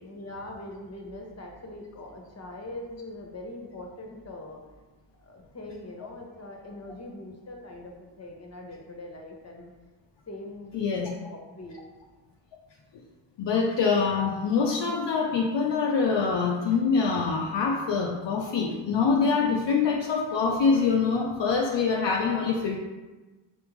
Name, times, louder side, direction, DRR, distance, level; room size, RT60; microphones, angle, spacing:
voice 1, 0.0-4.6 5.2-9.7 10.3-11.8 22.1-22.5, left 1 dB, 30° left, 1 dB, 1.0 m, -42 dB
voice 2, 10.7-11.1 13.4-22.8, left 5 dB, 60° left, 0 dB, 0.6 m, -25 dB
4.3 x 3.5 x 3.1 m, 1.2 s
cardioid pair, 50°, 49 cm